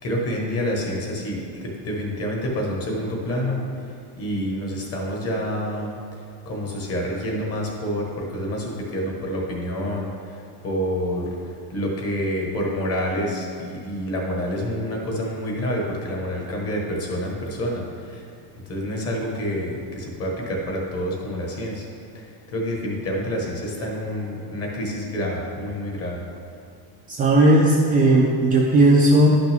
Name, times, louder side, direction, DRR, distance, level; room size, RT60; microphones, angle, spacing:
voice 1, 0.0-3.6 4.2-6.0 6.4-10.4 10.6-11.3 11.7-18.2 18.7-21.9 22.1-22.2 22.5-26.2, equal, 35° left, -1 dB, 1.5 m, -28 dB
voice 2, 27.1-29.3, right 1 dB, 20° right, -3 dB, 0.4 m, -16 dB
11.0 x 5.9 x 3.5 m, 2.3 s
cardioid pair, 165°, 44 cm